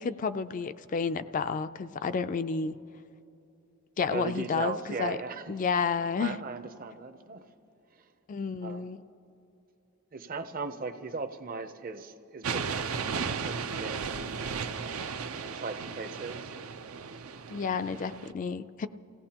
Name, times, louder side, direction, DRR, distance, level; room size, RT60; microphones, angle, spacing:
voice 1, 0.0-2.8 4.0-5.2 5.5-6.4 8.3-9.0 17.5-18.9, left 5 dB, 35° left, 12 dB, 0.3 m, -31 dB
voice 2, 4.1-5.6 6.2-7.5 8.0-8.1 8.6-8.9 10.1-14.6 15.5-16.5, right 3 dB, 40° right, 8 dB, 0.7 m, -38 dB
Storm Outside Metal-Framed Window, 12.4-18.3, right 5 dB, 80° right, 0.6 m, -35 dB
28.0 x 17.0 x 2.9 m, 2.9 s
head